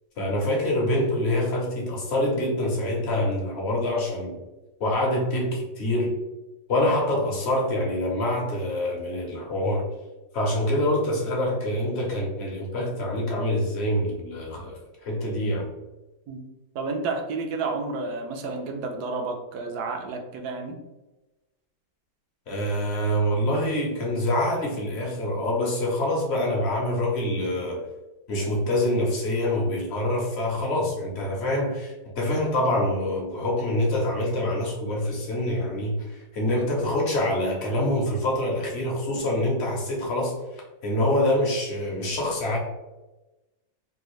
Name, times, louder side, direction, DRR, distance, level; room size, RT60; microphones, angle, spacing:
voice 1, 0.2-4.4 4.8-6.2 6.7-9.9 10.3-15.7 22.5-27.8 28.3-40.4 40.8-42.6, left 1 dB, 50° left, -1 dB, 0.8 m, -25 dB
voice 2, 16.7-20.8, right 3 dB, 75° right, 3 dB, 1.0 m, -31 dB
3.6 x 2.4 x 3.0 m, 1.1 s
omnidirectional pair, 1.9 m